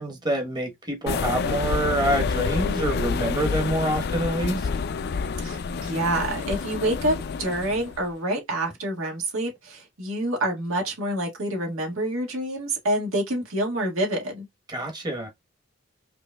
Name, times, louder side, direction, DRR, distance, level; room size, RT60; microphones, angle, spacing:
voice 1, 0.0-4.7 14.7-15.3, right 1 dB, 20° right, 1.2 m, -26 dB
sound 1, 1.1-8.0, left 5 dB, 50° left, 0.4 m, -28 dB
voice 2, 5.4-14.5, right 1 dB, 90° right, 1.8 m, -27 dB
5.0 x 3.0 x 2.3 m
head